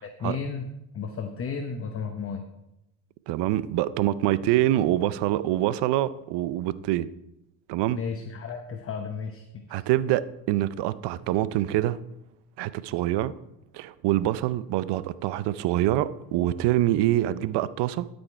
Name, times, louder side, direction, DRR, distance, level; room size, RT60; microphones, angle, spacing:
voice 1, 0.0-2.5 7.9-9.8, left 5 dB, 30° left, 0.9 m, -34 dB
voice 2, 3.3-7.1 7.7-8.0 9.7-12.0 12.6-13.3 13.7-18.1, right 14 dB, 60° right, 0.6 m, -25 dB
12.0 x 5.3 x 4.6 m
supercardioid pair, 80°, 46 cm